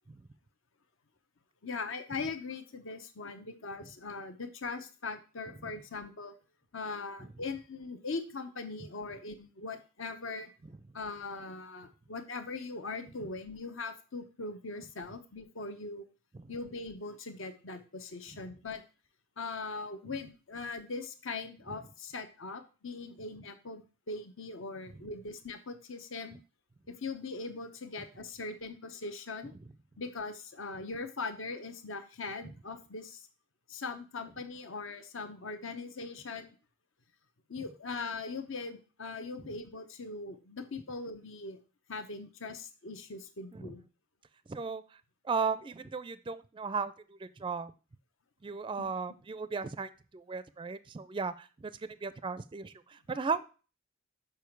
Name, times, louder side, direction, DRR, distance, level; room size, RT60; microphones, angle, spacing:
voice 1, 1.6-6.4 6.7-10.5 10.9-16.0 16.5-18.8 19.4-26.4 26.9-29.5 30.0-33.2 33.7-36.6 37.5-41.6 41.9-43.9 48.8-48.9, left 3 dB, 70° left, 8 dB, 0.9 m, -40 dB
voice 2, 44.5-44.8 45.2-47.7 48.4-51.7 52.0-53.6, right 5 dB, 25° right, 15 dB, 0.4 m, -36 dB
7.0 x 4.9 x 4.6 m, 0.34 s
head